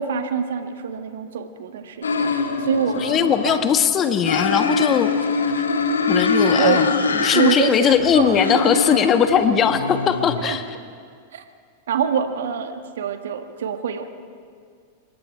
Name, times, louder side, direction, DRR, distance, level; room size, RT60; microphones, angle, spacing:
voice 1, 0.0-2.3 2.6-3.6 6.6-6.9 7.3-9.0 10.4-10.6 11.3-11.4 11.9-14.1, right 7 dB, 65° right, 7 dB, 1.6 m, -25 dB
sound 1, 2.0-3.9 4.2-7.5 7.9-10.4, left 4 dB, 80° left, 1.7 m, -23 dB
voice 2, 3.0-5.1 6.1-10.6, left 7 dB, 30° left, 8 dB, 1.3 m, -19 dB
26.0 x 22.5 x 4.6 m, 2.1 s
figure-of-eight pair, 95°, 0 cm